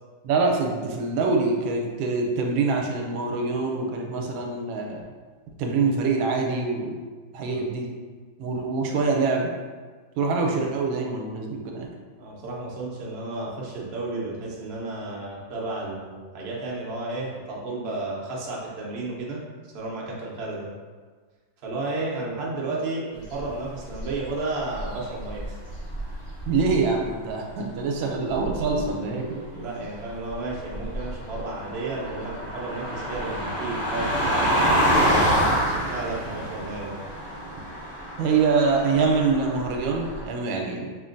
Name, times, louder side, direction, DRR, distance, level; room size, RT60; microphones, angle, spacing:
voice 1, 0.2-5.0 5.6-7.0 7.3-7.9 8.4-9.5 10.2-11.9 26.5-29.4 38.2-40.9, right 4 dB, 80° right, 1 dB, 1.4 m, -25 dB
voice 2, 12.2-19.4 19.7-20.7 21.6-25.6 29.5-37.0, right 2 dB, 65° right, -4 dB, 0.6 m, -32 dB
sound 1, 23.2-24.4 24.7-26.9 28.3-28.9 30.1-40.2, equal, 30° left, 1.0 m, -27 dB
5.4 x 2.5 x 2.5 m, 1.4 s
omnidirectional pair, 2.2 m